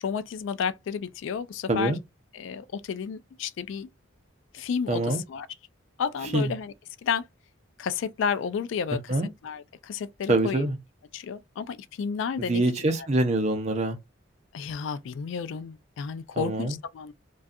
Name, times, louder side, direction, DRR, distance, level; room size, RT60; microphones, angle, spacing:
voice 1, 0.0-1.9 2.3-3.9 4.5-5.5 6.0-6.7 7.0-7.2 7.8-9.1 9.4-10.7 11.1-12.6 13.0-13.1 14.5-17.1, left 6 dB, 65° left, 0.3 m, -31 dB
voice 2, 4.9-5.2 6.3-6.5 9.1-9.3 10.3-10.8 12.4-14.0 16.4-16.7, right 2 dB, 35° right, 0.6 m, -25 dB
2.6 x 2.3 x 2.3 m
head